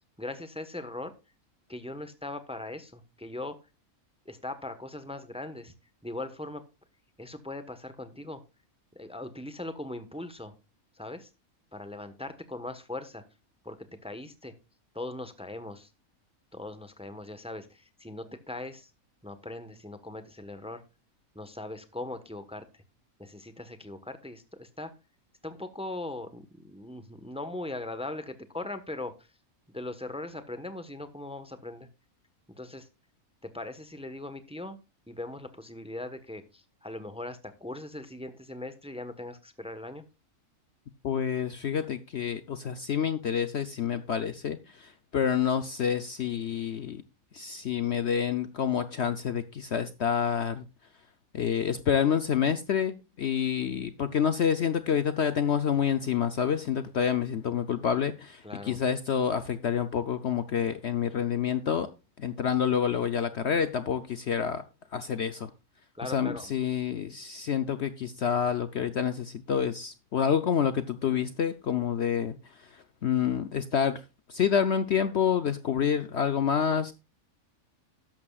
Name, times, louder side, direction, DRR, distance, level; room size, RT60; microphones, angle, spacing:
voice 1, 0.2-1.1 1.7-3.5 4.2-5.7 6.0-6.6 7.2-8.4 8.9-10.5 10.9-11.3 11.7-13.2 13.6-13.8 14.0-14.5 14.9-15.9 16.5-18.9 19.2-20.8 21.3-22.6 23.2-24.9 25.4-29.3 29.7-31.9 32.5-32.9 33.5-34.8 35.1-40.0 58.4-58.8 65.9-66.5, left 2 dB, 5° right, 1.0 m, -40 dB
voice 2, 41.0-47.0 47.3-50.6 51.3-61.9 62.2-64.6 64.9-65.5 66.0-74.0 74.3-76.9, left 8 dB, 60° left, 0.9 m, -28 dB
13.0 x 11.0 x 2.4 m
omnidirectional pair, 1.5 m